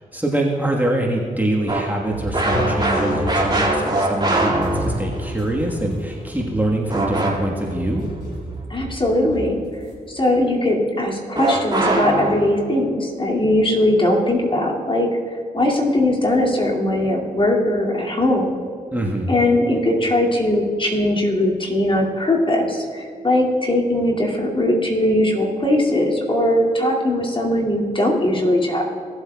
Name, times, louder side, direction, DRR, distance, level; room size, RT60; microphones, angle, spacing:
voice 1, 0.1-8.0 18.9-19.4, right 1 dB, 10° right, -2 dB, 1.4 m, -24 dB
sound 1, 1.7-5.3 6.9-7.7 11.4-12.5, right 1 dB, 25° right, 2.2 m, -21 dB
sound 2, 2.0-3.8 4.5-9.9, right 1 dB, 80° left, 2.6 m, -32 dB
voice 2, 8.7-9.6 10.1-18.6 19.3-28.9, left 1 dB, 30° left, -2 dB, 2.4 m, -20 dB
17.0 x 7.9 x 2.3 m, 2.2 s
supercardioid pair, 45°, 16 cm